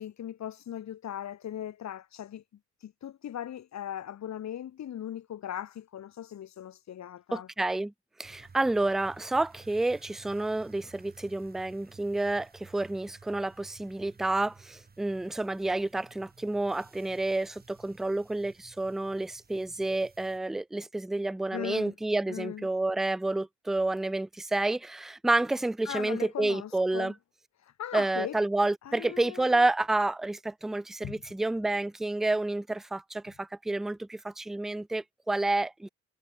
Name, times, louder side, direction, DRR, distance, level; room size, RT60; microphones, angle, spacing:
voice 1, 0.0-2.4 2.8-7.5 21.5-21.9 22.3-22.7 25.9-27.1 27.6-28.4 28.8-29.6 31.0-31.2, left 10 dB, 65° left, 2.6 m, -39 dB
voice 2, 7.3-7.9 8.2-27.1 27.9-35.9, right 2 dB, ahead, 0.3 m, -29 dB
sound 1, 8.2-20.4, right 4 dB, 30° right, 4.5 m, -55 dB
cardioid pair, 90°, 30 cm